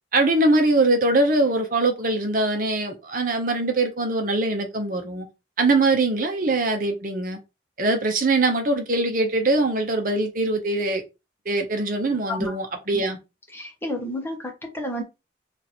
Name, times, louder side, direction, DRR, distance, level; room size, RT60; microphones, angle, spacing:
voice 1, 0.1-5.3 5.6-7.4 7.8-11.0 11.5-13.2, right 2 dB, 45° right, 0.8 m, -22 dB
voice 2, 13.5-15.0, left 1 dB, 10° left, 0.9 m, -31 dB
3.0 x 2.5 x 4.1 m
head